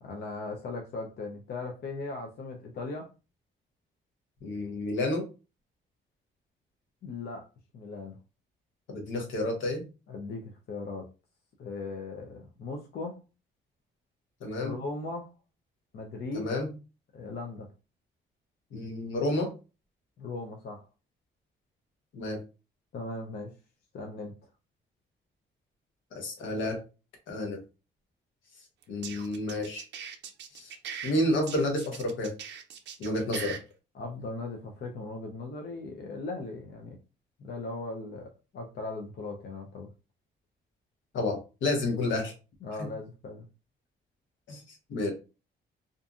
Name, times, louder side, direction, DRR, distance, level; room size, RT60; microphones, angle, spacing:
voice 1, 0.0-3.1 7.0-7.4 7.7-8.2 10.1-11.1 11.6-13.2 14.6-15.3 15.9-16.5 17.1-17.7 20.2-20.8 22.9-23.5 23.9-24.3 33.9-37.0 37.4-39.9 42.6-43.5, left 3 dB, 55° left, 2 dB, 0.6 m, -38 dB
voice 2, 4.4-5.3 8.9-9.8 14.4-14.7 16.3-16.7 18.7-19.5 22.1-22.4 26.1-26.8 27.3-27.6 28.9-29.8 30.5-30.7 31.0-32.3 33.0-33.6 41.1-42.3 44.5-44.6 44.9-45.1, left 1 dB, 75° left, 3 dB, 1.0 m, -30 dB
sound 1, 28.8-31.1 31.5-33.6, right 7 dB, 65° right, 0.5 m, -40 dB
2.5 x 2.5 x 2.4 m, 0.31 s
cardioid pair, 90°, 20 cm